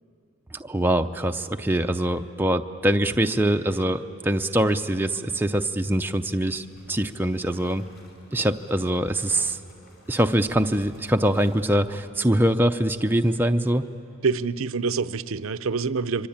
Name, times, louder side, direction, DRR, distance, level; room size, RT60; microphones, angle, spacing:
voice 1, 0.5-7.8 8.3-9.6 10.1-13.9, right 1 dB, 10° right, 6 dB, 0.5 m, -23 dB
sound 1, 6.4-12.7, left 1 dB, 45° left, 4.9 m, -53 dB
voice 2, 14.2-16.3, right 4 dB, 75° right, 15 dB, 0.6 m, -26 dB
27.0 x 24.0 x 8.7 m, 2.9 s
head